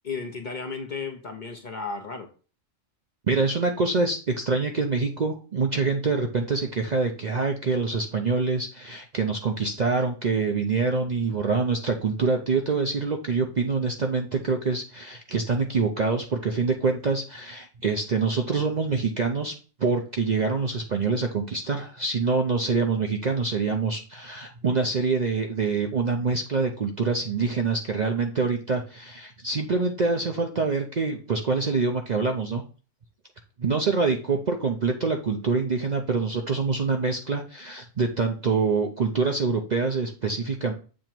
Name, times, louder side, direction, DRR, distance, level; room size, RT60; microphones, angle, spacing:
voice 1, 0.0-2.3, left 4 dB, 45° left, 4 dB, 0.7 m, -34 dB
voice 2, 3.3-19.5 19.8-32.6 33.6-40.7, right 4 dB, 45° right, 3 dB, 0.6 m, -25 dB
7.4 x 3.0 x 4.4 m, 0.36 s
omnidirectional pair, 1.4 m